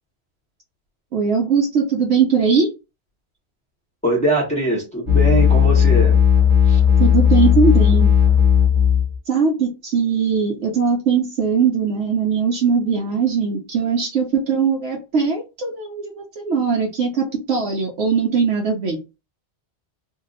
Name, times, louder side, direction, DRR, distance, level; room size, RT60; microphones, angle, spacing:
voice 1, 1.1-2.7 7.0-8.1 9.3-19.0, right 5 dB, 85° right, 1.0 m, -20 dB
voice 2, 4.0-6.2 6.6-6.8, right 1 dB, 5° left, 1.0 m, -21 dB
sound 1, 5.1-9.2, left 8 dB, 30° right, 1.3 m, -15 dB
2.7 x 2.4 x 3.9 m
omnidirectional pair, 1.2 m